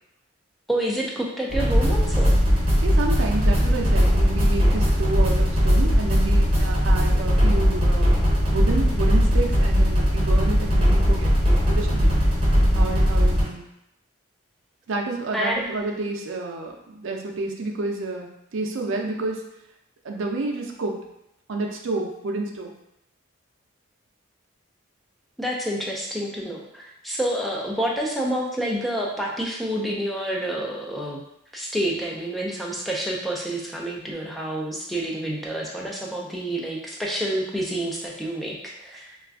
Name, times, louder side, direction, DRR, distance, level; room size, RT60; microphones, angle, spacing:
voice 1, 0.7-2.4 15.3-15.6 25.4-31.2 31.5-39.2, right 1 dB, ahead, -3 dB, 0.3 m, -28 dB
sound 1, 1.5-13.4, equal, 30° right, 0.8 m, -19 dB
voice 2, 2.8-8.2 8.4-11.3 11.7-12.1 12.7-13.6 14.9-19.5 20.0-21.0 21.5-22.7, right 2 dB, 75° right, 1 dB, 0.4 m, -29 dB
2.4 x 2.3 x 3.4 m, 0.82 s
head